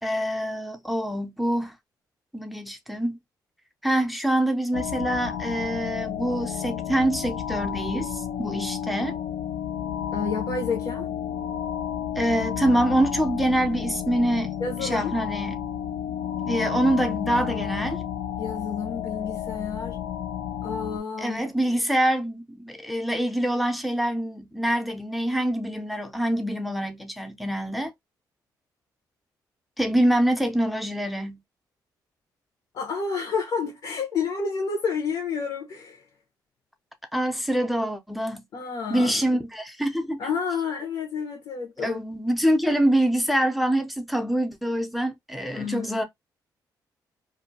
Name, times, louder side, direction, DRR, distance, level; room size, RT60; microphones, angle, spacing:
voice 1, 0.0-1.7 2.3-3.2 3.8-9.2 12.2-14.5 14.8-15.6 16.4-18.0 21.2-27.9 29.8-31.4 37.1-38.4 38.9-40.2 41.8-46.0, right 1 dB, ahead, 0.5 m, -25 dB
sound 1, 4.7-21.0, left 9 dB, 90° left, 0.4 m, -31 dB
voice 2, 10.1-11.1 14.6-15.1 18.4-20.0 20.6-21.4 32.7-36.0 38.5-39.4 40.2-42.0 45.5-46.0, left 5 dB, 70° left, 0.9 m, -30 dB
2.6 x 2.1 x 2.7 m
cardioid pair, 105°, 8 cm